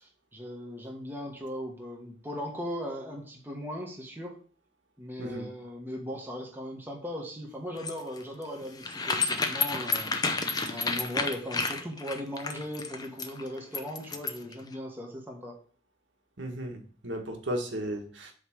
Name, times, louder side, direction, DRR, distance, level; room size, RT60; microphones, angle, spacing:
voice 1, 0.0-4.4 5.0-15.5, equal, 10° right, 0 dB, 1.4 m, -38 dB
sound 1, 7.8-14.5, left 4 dB, 20° left, 0.7 m, -30 dB
voice 2, 16.4-18.3, equal, 90° right, 3 dB, 1.6 m, -35 dB
7.9 x 3.4 x 6.3 m, 0.44 s
head